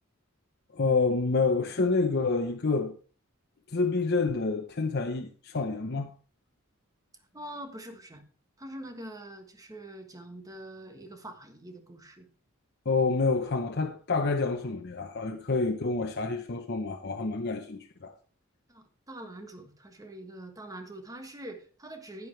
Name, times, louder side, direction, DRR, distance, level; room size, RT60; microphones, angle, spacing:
voice 1, 0.7-3.0 3.7-6.1 12.8-18.1, left 3 dB, 50° left, 0.8 m, -28 dB
voice 2, 7.3-8.2 8.6-12.3 18.7-22.3, right 1 dB, 15° right, 1.4 m, -44 dB
10.5 x 9.6 x 3.3 m
head